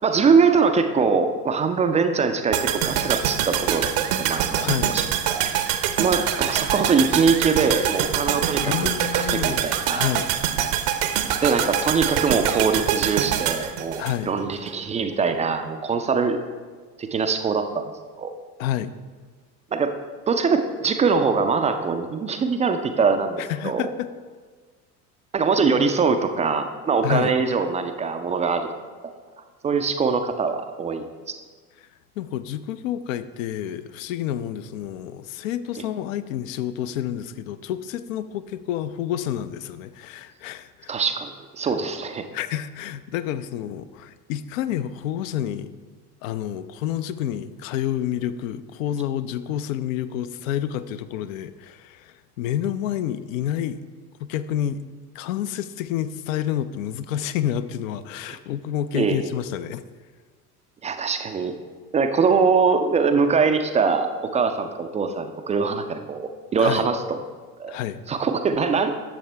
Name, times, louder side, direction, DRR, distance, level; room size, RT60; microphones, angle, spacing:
voice 1, 0.0-5.0 5.3-5.5 6.0-10.1 11.4-16.4 17.0-17.9 18.2-18.4 19.7-19.9 20.3-23.9 25.3-28.7 29.0-29.1 29.6-31.3 40.9-42.3 58.9-59.3 60.8-61.5 61.9-67.0 67.6-67.8 68.1-68.9, right 5 dB, 15° right, 7 dB, 0.4 m, -23 dB
sound 1, 2.5-14.7 15.0-15.1, right 10 dB, 50° right, 0.7 m, -24 dB
voice 2, 4.5-5.0 8.6-9.7 9.9-10.3 14.0-14.3 18.6-19.0 23.4-24.1 27.0-27.3 31.8-31.9 32.2-41.0 42.3-45.7 46.2-53.8 54.2-54.8 55.1-59.8 66.6-66.9 67.7-68.0, left 11 dB, 60° left, 13 dB, 0.6 m, -29 dB
11.5 x 7.1 x 3.3 m, 1.5 s
figure-of-eight pair, 65°, 46 cm